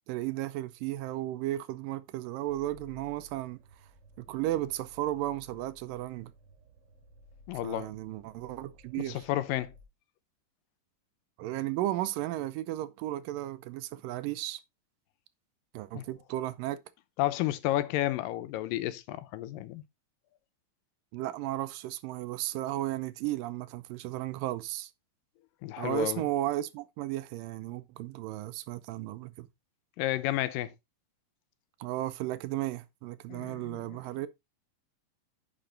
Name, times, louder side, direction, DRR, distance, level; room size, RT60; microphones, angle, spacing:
voice 1, 0.1-3.6 4.2-6.3 7.6-9.2 11.4-14.6 15.7-16.8 21.1-24.9 25.8-29.5 31.8-34.3, right 15 dB, 85° right, 2.3 m, -34 dB
sound 1, 2.5-9.8, left 1 dB, 45° right, 3.6 m, -57 dB
voice 2, 7.5-7.9 9.1-9.7 15.9-16.1 17.2-19.8 25.6-26.2 30.0-30.7 33.3-34.0, left 15 dB, 80° left, 2.3 m, -31 dB
10.5 x 5.1 x 3.7 m
omnidirectional pair, 3.9 m